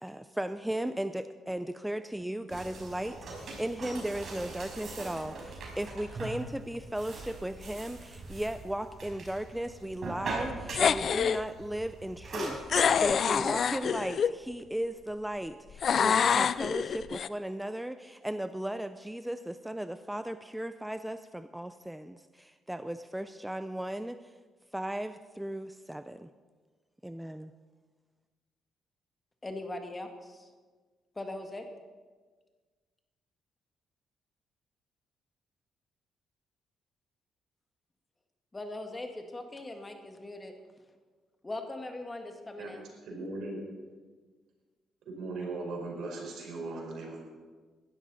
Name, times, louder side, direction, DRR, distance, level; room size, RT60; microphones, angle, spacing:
voice 1, 0.0-24.3 24.7-26.3 27.0-27.5, right 1 dB, 5° right, 11 dB, 0.5 m, -36 dB
sound 1, 2.5-13.1, right 2 dB, 55° right, 5.4 m, -41 dB
sound 2, 10.7-11.4 12.7-14.3 15.8-17.3, left 7 dB, 55° left, 0.4 m, -26 dB
voice 2, 29.4-30.5 31.2-31.7 38.5-40.5 41.4-42.9, left 2 dB, 20° left, 4 dB, 1.8 m, -40 dB
voice 3, 43.0-43.6 45.1-47.2, right 2 dB, 75° right, -1 dB, 4.9 m, -38 dB
17.5 x 12.5 x 4.1 m, 1.4 s
cardioid pair, 90°, 0 cm